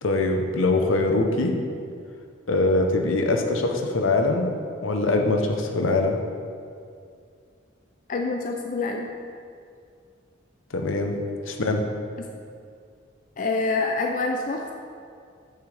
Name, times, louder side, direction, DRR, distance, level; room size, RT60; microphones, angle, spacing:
voice 1, 0.0-1.5 2.5-4.5 4.8-6.2 10.7-11.1 11.5-11.8, left 2 dB, 85° left, 3 dB, 0.8 m, -23 dB
voice 2, 8.1-9.1 12.2-12.3 13.4-14.7, left 3 dB, 40° left, 2 dB, 0.4 m, -26 dB
8.5 x 6.6 x 3.3 m, 2.3 s
head